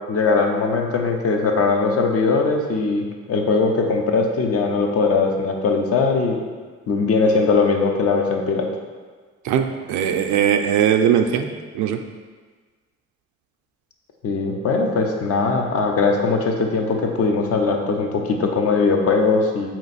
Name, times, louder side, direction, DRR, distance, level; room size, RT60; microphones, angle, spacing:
voice 1, 0.1-6.4 6.9-8.7 14.2-19.7, left 4 dB, 55° left, 2 dB, 0.7 m, -20 dB
voice 2, 9.4-11.5 11.7-12.0, right 9 dB, 75° right, 6 dB, 0.4 m, -19 dB
4.3 x 3.0 x 4.1 m, 1.5 s
cardioid pair, 100°, 30 cm